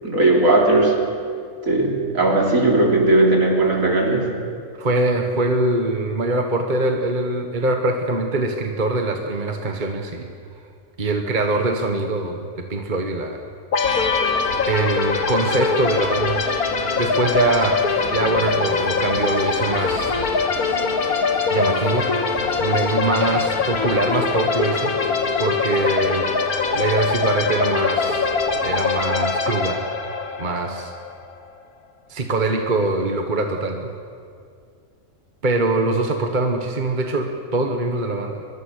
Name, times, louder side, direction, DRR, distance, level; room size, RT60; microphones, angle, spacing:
voice 1, 0.0-1.0 1.7-4.3, right 2 dB, 65° right, -1 dB, 4.1 m, -17 dB
voice 2, 4.8-10.3 11.0-13.4 14.0-14.1 14.7-16.4 17.0-17.8 18.1-20.1 20.8-21.1 21.5-22.1 22.6-24.9 25.4-26.3 26.7-28.3 28.6-29.8 30.4-30.9 32.1-33.9 35.4-38.5, right 2 dB, 35° right, 3 dB, 1.6 m, -23 dB
sound 1, 13.7-31.3, left 4 dB, 85° left, 2.1 m, -22 dB
Singing / Bird, 13.8-29.1, left 1 dB, 65° left, 7.0 m, -37 dB
23.0 x 23.0 x 6.7 m, 2.2 s
omnidirectional pair, 1.5 m